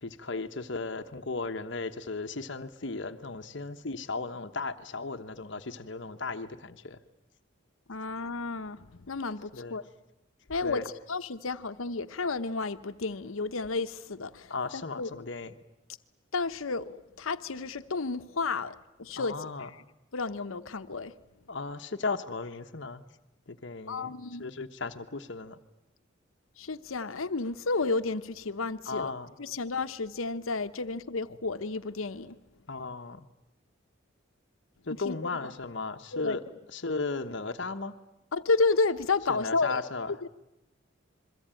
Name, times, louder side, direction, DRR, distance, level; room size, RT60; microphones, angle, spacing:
voice 1, 0.0-7.0 9.5-9.8 10.6-10.8 14.5-15.5 19.2-19.7 21.5-23.0 23.5-24.1 24.4-25.6 28.9-29.3 32.7-33.3 34.9-36.4 36.7-38.0 39.3-40.1, left 3 dB, 60° left, 1.1 m, -36 dB
voice 2, 7.9-9.8 10.5-15.1 16.3-19.7 20.1-21.1 23.9-24.4 26.6-29.1 29.4-32.4 35.1-35.2 35.4-35.5 36.1-36.4 38.3-39.8 40.2-40.3, left 3 dB, 85° left, 0.9 m, -31 dB
28.0 x 22.5 x 9.0 m
head